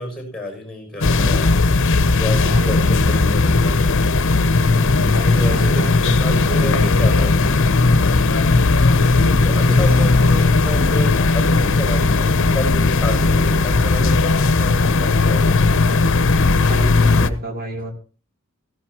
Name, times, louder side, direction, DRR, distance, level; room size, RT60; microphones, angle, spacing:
voice 1, 0.0-4.0 5.3-7.5 9.4-15.5, left 1 dB, 5° left, 2 dB, 6.9 m, -30 dB
sound 1, 1.0-17.3, left 3 dB, 60° left, 0.8 m, -16 dB
voice 2, 4.9-6.9 9.2-10.5 16.7-17.9, equal, 45° right, 2 dB, 3.3 m, -30 dB
17.0 x 15.5 x 2.9 m, 0.35 s
head